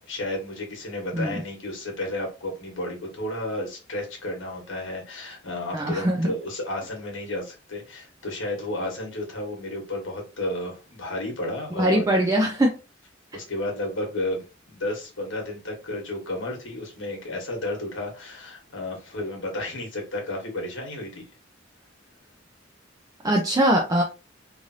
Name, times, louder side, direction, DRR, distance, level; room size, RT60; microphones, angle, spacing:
voice 1, 0.1-12.2 13.3-21.2, left 1 dB, 85° left, 1.3 m, -32 dB
voice 2, 5.7-6.3 11.8-12.7 23.2-24.0, right 1 dB, 20° right, 0.4 m, -21 dB
3.1 x 2.5 x 2.6 m
head